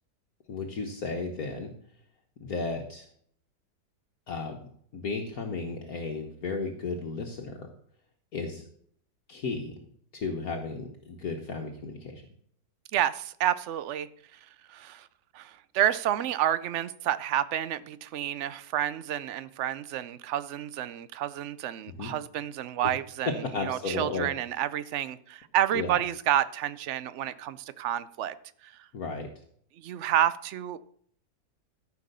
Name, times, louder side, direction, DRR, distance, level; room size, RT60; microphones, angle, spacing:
voice 1, 0.5-1.7 2.4-3.1 4.3-4.6 4.9-7.7 8.3-8.7 9.3-9.9 10.1-12.2 22.0-22.1 23.5-24.3 25.7-26.0 28.9-29.3, left 4 dB, 60° left, 2 dB, 1.6 m, -34 dB
voice 2, 12.9-14.4 14.7-15.1 15.3-23.3 23.6-28.3 28.6-28.7 29.8-30.8, right 11 dB, 70° right, 16 dB, 0.6 m, -29 dB
14.0 x 5.6 x 6.7 m, 0.63 s
omnidirectional pair, 1.9 m